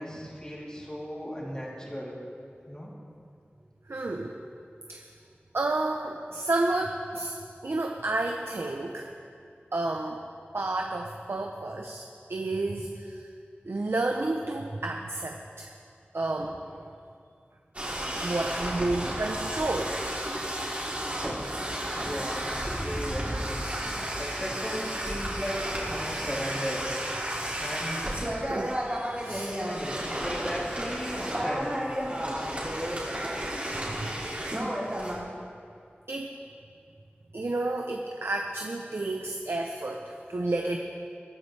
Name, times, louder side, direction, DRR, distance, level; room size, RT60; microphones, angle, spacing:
voice 1, 0.0-2.2 2.7-2.9 22.0-23.7 24.2-26.9 27.6-28.0 29.6-31.7 32.1-32.6, equal, 20° left, -5 dB, 3.3 m, -36 dB
voice 2, 3.9-4.4 4.9-5.0 5.5-7.4 7.6-9.1 9.7-10.2 10.5-13.3 13.6-15.7 16.1-16.9 18.2-20.0 28.5-29.6 34.0-34.1 34.5-34.6 36.1-36.3 37.3-40.8, right 2 dB, 80° right, 2 dB, 0.8 m, -31 dB
sound 1, 17.7-35.1, right 1 dB, 35° right, 3.4 m, -32 dB
22.0 x 9.6 x 3.4 m, 2.4 s
wide cardioid pair, 60°, 4 cm